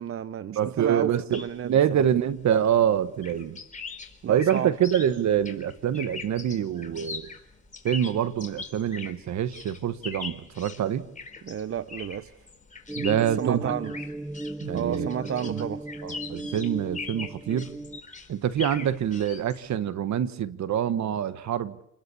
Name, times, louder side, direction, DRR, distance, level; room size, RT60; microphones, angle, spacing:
voice 1, 0.0-1.8 4.2-4.7 11.4-12.3 13.1-13.9 14.7-15.8, right 9 dB, 50° right, 0.9 m, -31 dB
voice 2, 0.5-3.6 4.3-7.3 7.8-11.1 12.9-13.7 14.6-15.1 15.5-15.7 16.0-17.7 18.3-21.8, right 9 dB, 65° right, 1.5 m, -26 dB
sound 1, 1.3-19.8, left 4 dB, 25° left, 4.2 m, -42 dB
sound 2, 12.9-18.0, right 2 dB, 5° right, 0.8 m, -36 dB
28.5 x 20.5 x 7.2 m
cardioid pair, 90°, 30 cm